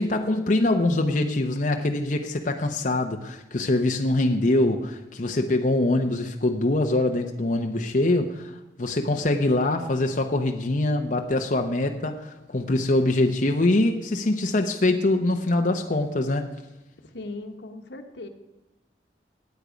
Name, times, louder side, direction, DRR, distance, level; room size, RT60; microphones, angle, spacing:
voice 1, 0.0-8.5 8.8-16.5, left 2 dB, 50° left, 4 dB, 0.9 m, -23 dB
voice 2, 17.0-18.3, left 2 dB, 85° left, 6 dB, 1.4 m, -38 dB
19.0 x 8.2 x 5.1 m, 1.0 s
head